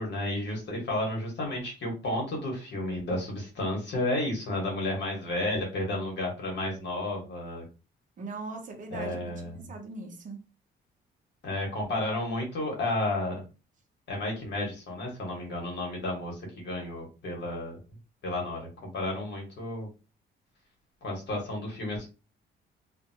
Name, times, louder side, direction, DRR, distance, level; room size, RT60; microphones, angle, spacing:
voice 1, 0.0-7.6 8.9-9.5 11.4-13.4 14.1-17.8 18.2-19.9 21.0-22.1, left 1 dB, 65° left, 1.4 m, -32 dB
voice 2, 8.2-10.4, right 3 dB, 40° right, 0.9 m, -40 dB
2.5 x 2.5 x 2.7 m
cardioid pair, 90°, 20 cm